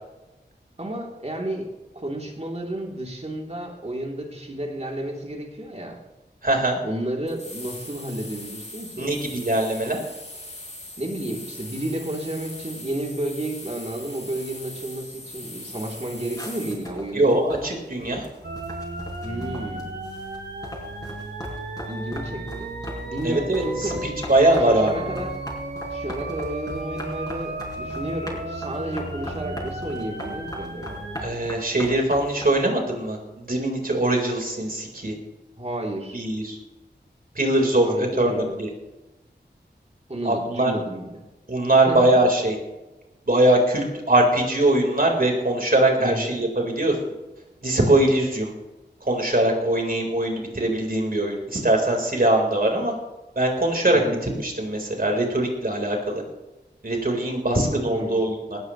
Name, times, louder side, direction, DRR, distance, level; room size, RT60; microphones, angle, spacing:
voice 1, 0.8-1.7 1.9-6.0 6.8-9.2 11.0-17.3 19.2-19.9 21.8-22.7 23.0-24.1 24.6-25.3 25.9-31.0 35.6-36.2 37.8-38.6 40.1-41.2 41.7-42.2 46.0-46.3 53.9-54.2 57.4-58.2, right 1 dB, 35° right, -1 dB, 3.2 m, -32 dB
voice 2, 6.4-6.8 9.0-10.0 17.1-18.2 23.2-25.0 31.2-35.1 36.1-36.6 37.4-38.7 40.2-40.7 41.5-42.6 43.3-46.9 47.6-48.5 49.0-52.9 53.4-54.0 54.4-56.2 56.8-58.6, right 1 dB, 55° right, 1 dB, 4.2 m, -22 dB
sound 1, 7.3-16.9, left 1 dB, 40° left, 5.7 m, -40 dB
sound 2, 16.4-20.4 20.6-32.5, left 1 dB, 20° left, 5.9 m, -38 dB
sound 3, 18.4-31.3, right 2 dB, 75° right, 2.4 m, -34 dB
19.0 x 15.5 x 3.2 m, 1.1 s
wide cardioid pair, 65°, 18 cm